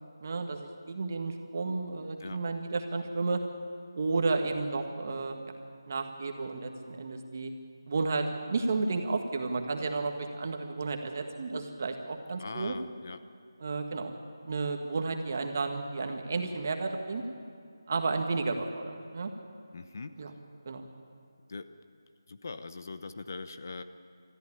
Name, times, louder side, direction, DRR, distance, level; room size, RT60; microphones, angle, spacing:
voice 1, 0.2-3.4 3.9-5.4 5.9-7.5 7.9-12.7 13.6-14.1 14.4-17.2 17.9-19.3 20.2-20.3 20.6-20.8, right 3 dB, 35° right, 5 dB, 1.7 m, -32 dB
voice 2, 12.4-13.2 19.7-20.4 21.5-21.7 22.3-23.8, left 3 dB, 40° left, 10 dB, 0.8 m, -41 dB
19.5 x 14.0 x 9.9 m, 2.3 s
figure-of-eight pair, 170°, 2 cm